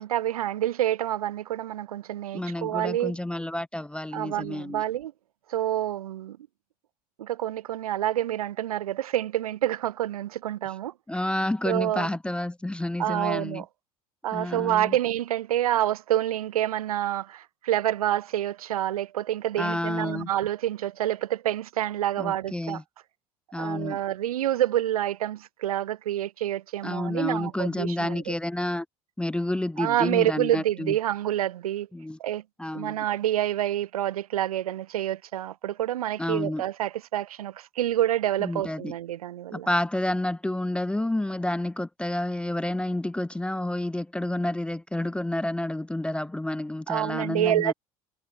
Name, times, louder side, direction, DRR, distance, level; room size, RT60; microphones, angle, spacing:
voice 1, 0.0-3.2 4.1-5.1 5.5-6.4 7.2-10.9 11.7-12.1 13.0-13.6 14.2-22.8 23.6-28.3 29.8-31.9 32.2-32.4 32.7-39.7 46.9-47.7, right 12 dB, 80° right, 0.5 m, -27 dB
voice 2, 2.3-4.8 11.1-13.6 14.3-14.9 19.6-20.3 22.2-22.8 23.5-24.0 26.8-28.9 29.2-31.0 31.9-32.2 32.6-33.1 36.2-36.6 38.4-38.9 39.5-47.7, left 1 dB, 5° left, 0.4 m, -29 dB
figure-of-eight pair, 60°, 18 cm